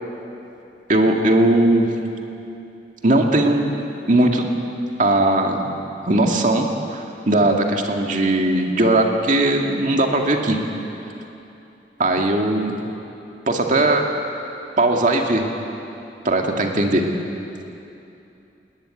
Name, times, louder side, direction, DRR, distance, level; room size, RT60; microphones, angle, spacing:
voice 1, 0.9-1.9 3.0-3.7 4.1-4.5 5.0-5.7 6.1-10.6 12.0-12.8 13.5-14.0 14.8-15.4 16.2-17.0, right 1 dB, 45° right, 2 dB, 2.2 m, -18 dB
20.0 x 19.5 x 9.2 m, 2.8 s
head